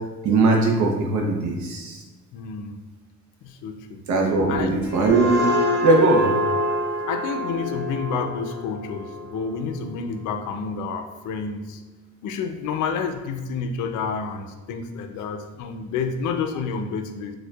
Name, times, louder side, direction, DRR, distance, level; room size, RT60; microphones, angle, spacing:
voice 1, 0.2-2.0 4.1-5.5 5.8-6.3, right 3 dB, 70° right, 0 dB, 0.6 m, -20 dB
voice 2, 2.3-2.8 3.4-4.0 4.5-4.7 7.1-11.8 12.2-17.3, left 5 dB, 80° left, 6 dB, 0.4 m, -29 dB
sound 1, 4.6-10.1, left 1 dB, 20° left, 0.8 m, -27 dB
4.3 x 2.2 x 2.3 m, 1.2 s
cardioid pair, 90°, 30 cm